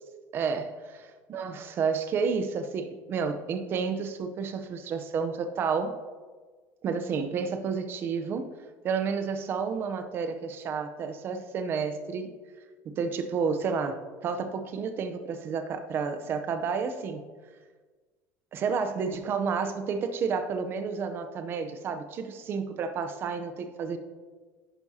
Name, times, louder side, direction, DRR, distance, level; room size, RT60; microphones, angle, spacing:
voice 1, 0.3-0.7 1.3-6.0 6.8-8.5 8.8-12.3 12.9-17.3 18.5-24.0, right 5 dB, 35° right, 8 dB, 0.7 m, -30 dB
10.5 x 9.4 x 2.8 m, 1.4 s
cardioid pair, 160°, 6 cm